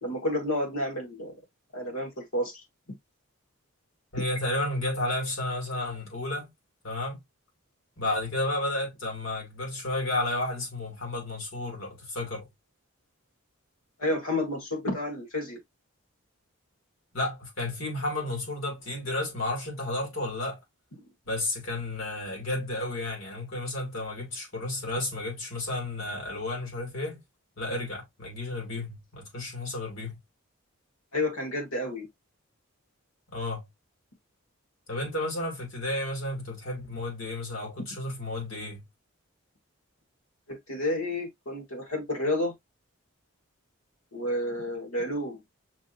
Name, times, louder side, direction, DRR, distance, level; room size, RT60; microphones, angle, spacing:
voice 1, 0.0-1.3 1.7-2.6 14.0-15.6 31.1-32.1 40.5-42.5 44.1-45.4, left 1 dB, 85° left, 1.8 m, -30 dB
voice 2, 4.1-6.5 6.8-7.2 8.0-12.5 17.1-20.6 21.2-27.2 27.6-30.2 33.3-33.7 34.9-38.8, left 2 dB, 65° left, 2.4 m, -32 dB
5.9 x 2.9 x 2.5 m
head